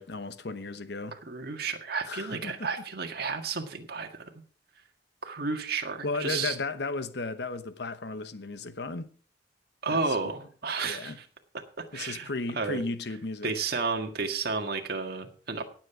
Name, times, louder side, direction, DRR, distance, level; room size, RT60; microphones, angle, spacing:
voice 1, 0.0-1.2 2.1-2.7 6.0-9.1 9.9-10.2 10.8-11.2 11.9-13.5, left 3 dB, 65° left, 1.0 m, -35 dB
voice 2, 1.2-4.3 5.2-6.6 9.8-11.2 11.9-12.3 12.6-12.8 13.4-15.6, right 4 dB, 60° right, 1.8 m, -32 dB
17.5 x 7.6 x 4.8 m
head